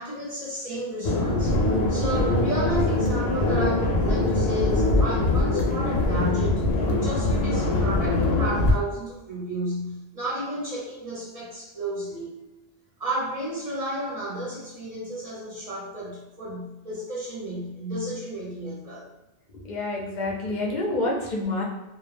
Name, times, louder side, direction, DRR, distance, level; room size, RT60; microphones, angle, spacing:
voice 1, 0.0-1.6 1.9-6.6 7.0-12.3 13.0-19.1, right 1 dB, 40° right, -6 dB, 0.7 m, -32 dB
sound 1, 1.0-8.7, left 2 dB, 80° left, 0.8 m, -23 dB
voice 2, 19.5-21.6, left 2 dB, 55° left, -2 dB, 0.6 m, -28 dB
2.2 x 2.1 x 3.2 m, 1.0 s
omnidirectional pair, 1.0 m